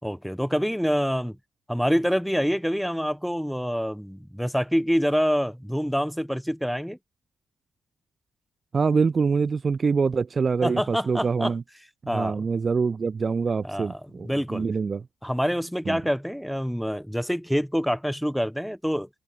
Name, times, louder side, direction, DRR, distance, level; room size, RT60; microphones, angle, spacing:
voice 1, 0.0-1.4 1.7-7.0 10.6-11.5 12.1-12.5 13.6-14.7 15.2-19.1, equal, ahead, 2.1 m, -26 dB
voice 2, 8.7-11.6 12.1-15.0 15.9-16.0, right 5 dB, 35° right, 0.8 m, -25 dB
cardioid pair, 90°, 0 cm